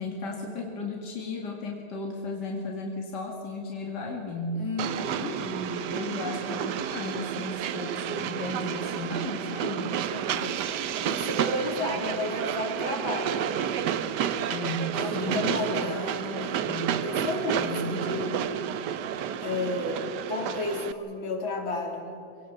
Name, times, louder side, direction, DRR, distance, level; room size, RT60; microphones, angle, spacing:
voice 1, 0.0-4.7 5.4-10.0 11.8-12.1 14.5-16.1 16.5-17.0 17.5-18.1, left 2 dB, 55° left, 0 dB, 2.8 m, -35 dB
voice 2, 4.6-5.5 10.1-13.6 15.0-16.6 17.0-18.5 19.4-22.1, left 2 dB, 75° left, 1 dB, 4.2 m, -33 dB
Train, 4.8-20.9, right 9 dB, 65° right, 1.2 m, -31 dB
25.5 x 18.0 x 7.4 m, 2.6 s
omnidirectional pair, 2.2 m